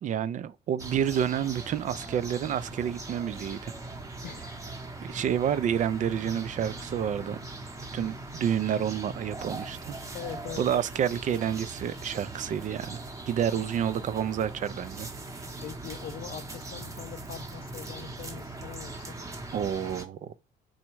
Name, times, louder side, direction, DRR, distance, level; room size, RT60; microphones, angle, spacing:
voice 1, 0.0-3.7 5.0-7.4 7.9-10.0 10.6-15.1 19.5-20.3, right 9 dB, 50° right, 0.4 m, -29 dB
sound 1, 0.8-20.0, right 2 dB, 20° right, 0.9 m, -40 dB
voice 2, 4.2-4.7 10.1-10.7 15.6-19.2, left 10 dB, 60° left, 0.5 m, -42 dB
4.2 x 2.3 x 4.5 m
cardioid pair, 110°, 17 cm